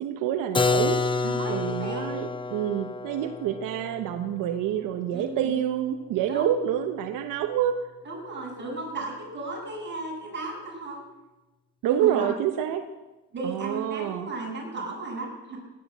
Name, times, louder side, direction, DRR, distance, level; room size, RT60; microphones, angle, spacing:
voice 1, 0.0-1.2 1.5-7.8 11.8-12.8 13.4-14.3, right 10 dB, 85° right, 7 dB, 1.1 m, -27 dB
Keyboard (musical), 0.5-6.2, left 4 dB, 15° left, 0.6 m, -29 dB
voice 2, 1.2-2.0 5.1-5.5 6.3-6.6 8.0-11.0 11.8-12.3 13.3-15.6, right 2 dB, 35° right, -2 dB, 7.7 m, -35 dB
17.0 x 10.5 x 8.1 m, 1.1 s
cardioid pair, 115°, 31 cm